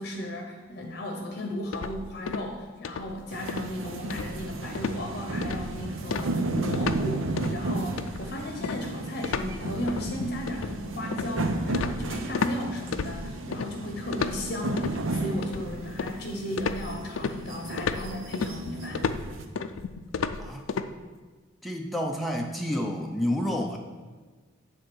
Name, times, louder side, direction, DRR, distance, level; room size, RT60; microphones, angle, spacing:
voice 1, 0.0-19.0, left 1 dB, 50° left, 1 dB, 0.8 m, -35 dB
sound 1, 1.7-2.6 2.8-3.2 3.5-3.7 4.1-4.5 4.8-5.0 5.4-5.8 6.1-7.1 7.4-7.6 8.0-12.6 12.9-13.7 14.1-15.0 15.4-16.3 16.6-20.9, left 5 dB, 85° left, 0.4 m, -32 dB
sound 2, 3.3-19.4, right 2 dB, 80° right, 0.7 m, -33 dB
voice 2, 21.6-23.8, left 1 dB, ahead, 0 dB, 0.5 m, -29 dB
9.3 x 3.8 x 6.2 m, 1.3 s
head